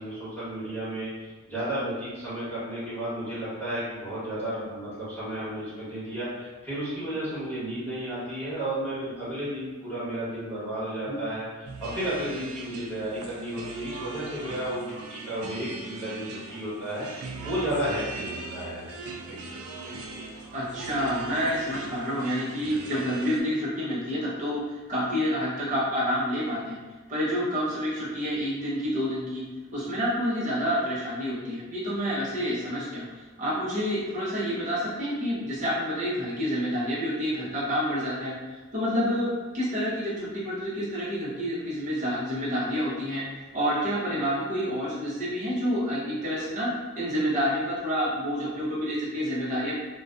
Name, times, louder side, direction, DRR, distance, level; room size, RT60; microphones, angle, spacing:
voice 1, 0.0-11.5 11.8-18.8 19.2-19.4, right 1 dB, 10° left, -13 dB, 1.2 m, -33 dB
sound 1, 11.7-23.4, right 3 dB, 80° right, 0.3 m, -40 dB
voice 2, 20.5-26.8 27.1-29.4 29.7-33.0 33.4-38.3 38.7-39.3 39.5-43.2 43.5-46.7 46.9-49.8, equal, 35° right, -8 dB, 0.7 m, -28 dB
2.4 x 2.2 x 2.4 m, 1.3 s
head